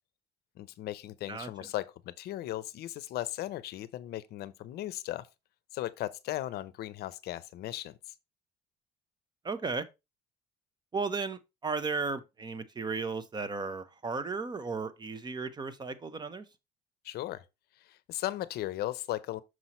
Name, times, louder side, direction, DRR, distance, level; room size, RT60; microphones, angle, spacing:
voice 1, 0.6-5.3 5.7-8.0 17.0-17.4 17.8-19.4, left 14 dB, 70° left, 0.6 m, -37 dB
voice 2, 9.4-9.8 10.9-16.4, right 4 dB, 25° right, 0.7 m, -35 dB
6.2 x 5.5 x 3.0 m
cardioid pair, 110°, 17 cm